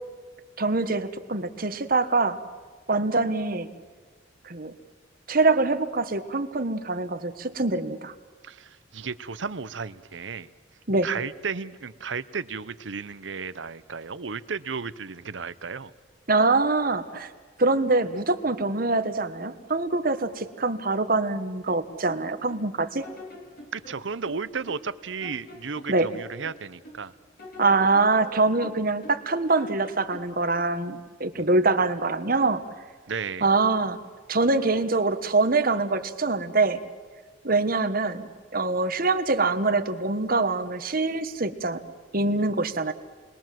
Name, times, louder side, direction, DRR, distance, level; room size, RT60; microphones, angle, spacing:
voice 1, 0.6-2.4 2.9-3.7 4.4-4.7 5.3-8.1 10.9-11.1 16.3-17.3 17.6-23.0 25.9-26.1 27.6-32.6 33.4-34.0 34.3-36.8 37.4-41.8 42.1-42.9, right 3 dB, 50° right, 9 dB, 1.3 m, -24 dB
voice 2, 8.4-10.5 11.0-15.9 23.7-27.1 31.3-31.5 33.1-33.5, right 5 dB, 75° right, 15 dB, 0.8 m, -34 dB
sound 1, 21.7-22.7 23.0-24.9 25.2-27.0 27.4-29.3 29.6-30.4, left 1 dB, 50° left, 4.3 m, -45 dB
29.0 x 21.5 x 7.6 m, 1.5 s
head